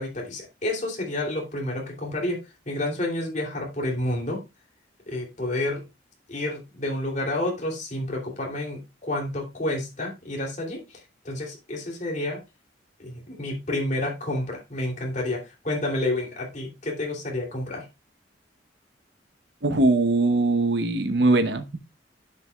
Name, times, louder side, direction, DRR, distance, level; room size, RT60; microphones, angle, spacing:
voice 1, 0.0-2.4 2.6-4.4 5.1-5.8 6.3-11.0 11.2-12.4 13.0-17.8, left 1 dB, 40° left, 2.9 m, -29 dB
voice 2, 19.6-21.8, right 2 dB, 60° right, 0.9 m, -21 dB
10.5 x 6.9 x 2.3 m
head